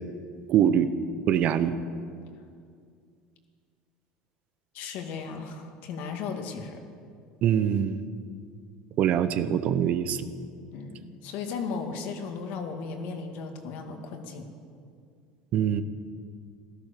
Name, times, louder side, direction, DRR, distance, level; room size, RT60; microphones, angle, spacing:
voice 1, 0.5-0.9 1.3-1.7 7.4-8.0 9.0-10.2 15.5-15.8, right 9 dB, 50° right, 12 dB, 0.9 m, -23 dB
voice 2, 4.7-6.8 10.7-14.5, left 5 dB, 65° left, 4 dB, 2.2 m, -36 dB
16.0 x 13.0 x 6.8 m, 2.2 s
supercardioid pair, 130°, 3 cm